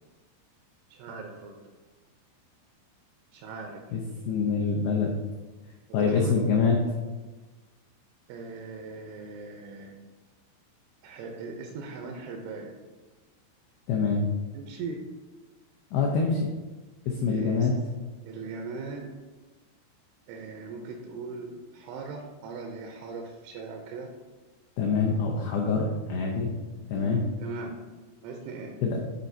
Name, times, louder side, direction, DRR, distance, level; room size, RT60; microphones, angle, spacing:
voice 1, 0.9-1.6 3.3-3.8 5.9-6.4 8.3-10.0 11.0-12.8 14.5-15.0 17.3-17.7 18.2-19.1 20.3-24.1 26.9-27.8 28.2-28.8, right 4 dB, 85° right, 1 dB, 3.0 m, -39 dB
voice 2, 4.3-5.1 5.9-6.8 13.9-14.2 15.9-16.5 17.1-17.7 24.8-26.5 26.9-27.2 28.8-29.0, left 5 dB, 90° left, -1 dB, 2.2 m, -25 dB
11.0 x 4.3 x 2.7 m, 1.2 s
omnidirectional pair, 5.4 m